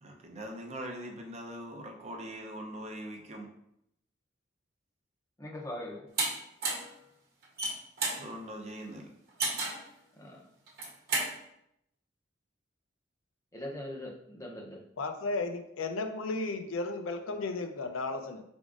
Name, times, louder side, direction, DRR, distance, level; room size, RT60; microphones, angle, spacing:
voice 1, 0.0-3.5 8.2-9.1, right 1 dB, 35° right, 2 dB, 0.6 m, -42 dB
voice 2, 5.4-6.1 10.2-10.4 13.5-14.8, left 1 dB, 15° left, -1 dB, 0.6 m, -41 dB
sound 1, 6.2-6.3 6.6-6.9 7.4-8.2 9.4-9.8 10.7-11.3, right 3 dB, 50° right, 1.0 m, -31 dB
voice 3, 15.0-18.4, left 3 dB, 85° left, 6 dB, 0.5 m, -34 dB
4.9 x 3.5 x 2.5 m, 0.76 s
head